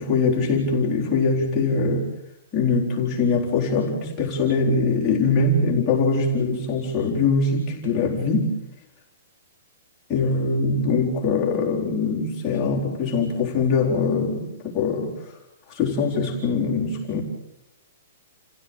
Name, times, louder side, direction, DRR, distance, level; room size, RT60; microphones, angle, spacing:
voice 1, 0.0-2.1 2.5-8.5 10.1-15.4 15.7-17.2, left 4 dB, 10° left, -6 dB, 4.2 m, -22 dB
30.0 x 16.0 x 9.1 m, 0.87 s
hypercardioid pair, 180°, 0 cm